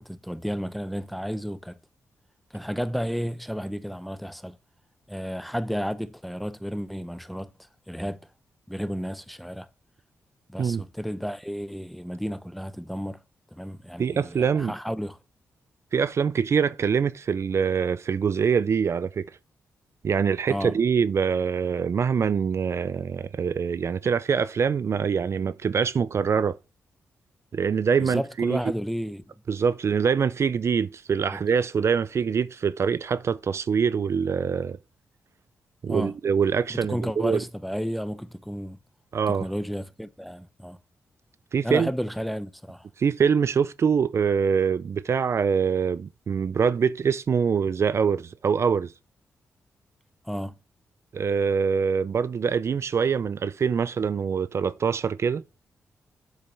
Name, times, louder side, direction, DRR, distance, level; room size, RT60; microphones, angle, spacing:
voice 1, 0.0-1.8 2.5-4.6 5.1-7.5 7.9-8.2 8.7-9.7 10.5-13.2 13.5-15.2 20.5-20.7 28.0-29.2 31.3-31.4 35.9-36.1 36.7-38.8 39.3-40.8 41.6-42.9 50.2-50.6, equal, ahead, 0.7 m, -32 dB
voice 2, 14.0-14.7 15.9-19.3 20.0-26.5 27.5-28.6 29.5-34.8 35.8-37.4 39.1-39.5 41.5-41.9 43.0-48.9 51.1-55.4, right 6 dB, 55° right, 0.4 m, -24 dB
7.9 x 6.8 x 3.3 m
cardioid pair, 55°, 6 cm